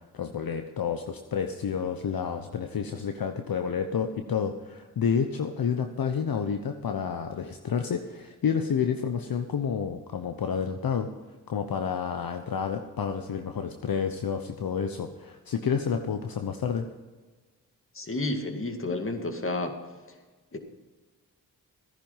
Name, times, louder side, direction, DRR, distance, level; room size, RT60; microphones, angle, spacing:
voice 1, 0.1-11.1 11.5-16.9, left 7 dB, 60° left, 6 dB, 1.0 m, -29 dB
voice 2, 17.9-19.8 20.5-20.6, left 2 dB, 30° left, 6 dB, 2.1 m, -31 dB
14.0 x 10.0 x 5.6 m, 1.3 s
supercardioid pair, 50°, 39 cm